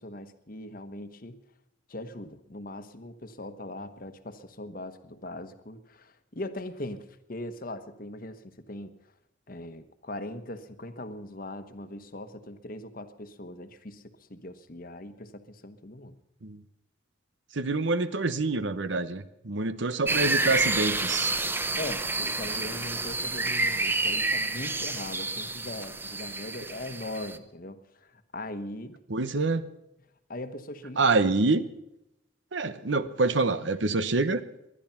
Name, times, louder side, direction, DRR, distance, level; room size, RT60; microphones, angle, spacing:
voice 1, 0.0-1.4 1.9-8.9 9.5-16.2 21.8-29.0 30.3-31.1, left 1 dB, 45° left, 10 dB, 1.1 m, -40 dB
voice 2, 17.5-21.3 29.1-29.7 31.0-31.6 32.5-34.4, right 3 dB, 75° right, 13 dB, 1.0 m, -26 dB
sound 1, 20.1-27.4, right 2 dB, 10° right, 0.7 m, -29 dB
19.5 x 12.0 x 5.8 m, 0.88 s
head